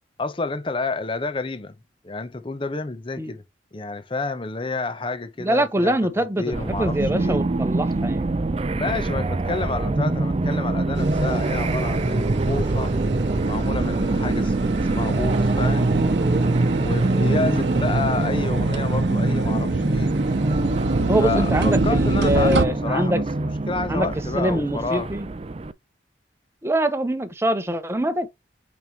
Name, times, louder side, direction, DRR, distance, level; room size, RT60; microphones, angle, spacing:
voice 1, 0.2-1.7 2.0-3.4 3.7-7.4 8.7-12.9 13.4-14.5 14.9-15.9 16.7-20.2 21.2-25.1, left 3 dB, 30° left, 0.7 m, -29 dB
voice 2, 5.4-8.3 17.5-17.7 21.1-23.2 23.9-24.1 24.4-25.3 26.6-28.3, right 1 dB, 15° right, 0.8 m, -24 dB
sound 1, 6.5-25.7, right 2 dB, 30° right, 0.4 m, -25 dB
sound 2, 10.9-22.7, right 2 dB, 70° right, 0.8 m, -24 dB
6.1 x 5.2 x 2.9 m
head